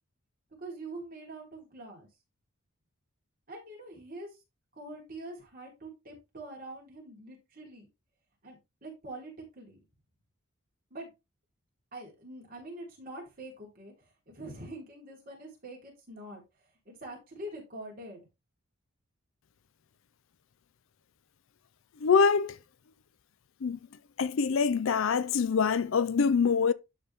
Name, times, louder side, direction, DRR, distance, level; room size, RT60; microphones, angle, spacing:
voice 1, 0.6-2.1 3.5-4.4 4.7-7.9 8.4-9.8 10.9-11.1 11.9-18.3, right 1 dB, 40° right, 3.7 m, -45 dB
voice 2, 22.0-22.6 23.6-23.8 24.2-26.7, left 5 dB, 60° left, 0.4 m, -25 dB
12.0 x 4.0 x 3.4 m
head